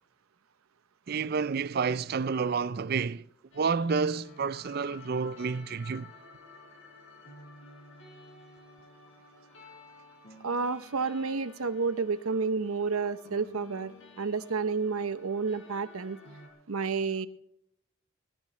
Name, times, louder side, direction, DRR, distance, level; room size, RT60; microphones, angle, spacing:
voice 1, 1.1-3.2 3.5-6.1, right 5 dB, 45° right, 0.4 m, -29 dB
sound 1, 3.5-16.5, left 2 dB, 65° left, 4.1 m, -53 dB
voice 2, 10.4-16.2 16.7-17.3, right 4 dB, 90° right, 0.8 m, -30 dB
19.0 x 12.5 x 3.2 m
head